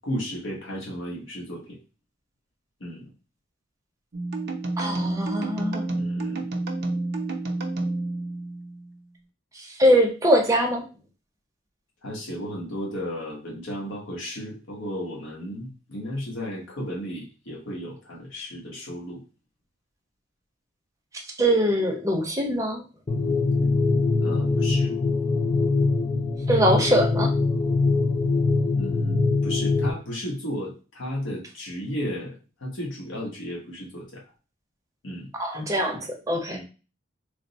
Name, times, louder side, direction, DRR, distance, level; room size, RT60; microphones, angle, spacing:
voice 1, 0.0-1.8 2.8-3.0 6.0-6.4 12.0-19.2 24.2-24.9 28.7-32.3 32.6-34.2 35.0-35.3 36.5-36.6, equal, 80° left, -3 dB, 1.1 m, -34 dB
sound 1, 4.1-9.0, right 2 dB, 55° right, 0.6 m, -29 dB
voice 2, 4.8-6.0 9.8-10.8 21.4-22.8 26.5-27.3 35.4-36.6, equal, 15° right, 2 dB, 0.7 m, -22 dB
sound 2, 23.1-29.9, left 3 dB, 25° left, 0.3 m, -23 dB
3.3 x 2.0 x 4.0 m, 0.34 s
head